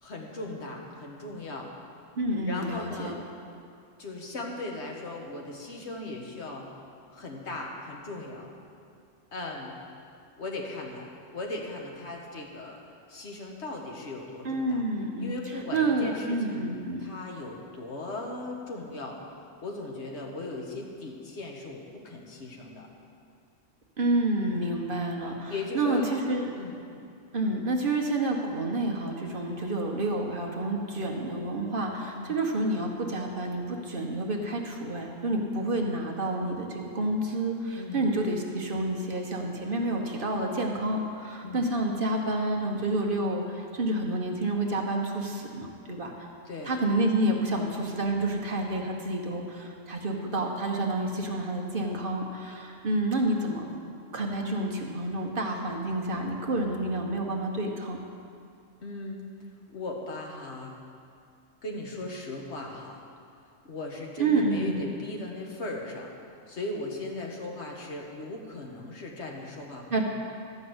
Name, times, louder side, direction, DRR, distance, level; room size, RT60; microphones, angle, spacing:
voice 1, 0.0-1.7 2.5-3.2 4.0-6.7 7.1-8.5 9.3-9.8 10.4-12.8 13.1-14.8 15.2-16.6 17.0-19.2 19.6-22.9 25.5-26.1 26.5-26.8 29.5-29.7 30.9-31.1 32.1-32.4 37.8-38.1 41.4-41.7 46.4-46.7 58.8-59.2 59.7-60.8 61.6-63.0 63.4-66.1 66.5-70.0, left 2 dB, 60° left, 0 dB, 1.6 m, -38 dB
voice 2, 2.1-3.1 14.4-17.0 24.0-26.5 27.3-46.3 46.6-53.7 54.1-58.0 64.2-64.8 69.9-70.0, right 2 dB, 45° right, 1 dB, 1.2 m, -29 dB
13.0 x 5.4 x 7.9 m, 2.4 s
omnidirectional pair, 1.3 m